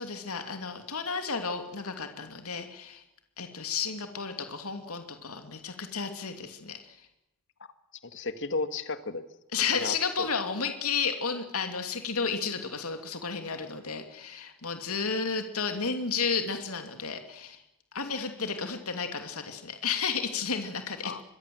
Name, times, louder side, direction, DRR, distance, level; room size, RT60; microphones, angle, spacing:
voice 1, 0.0-3.0 3.4-7.0 9.5-17.6 17.9-21.2, left 5 dB, 75° left, 6 dB, 2.9 m, -32 dB
voice 2, 8.0-9.2 9.7-10.3 21.0-21.2, left 3 dB, 60° left, 10 dB, 2.0 m, -33 dB
26.0 x 22.5 x 7.9 m, 0.88 s
head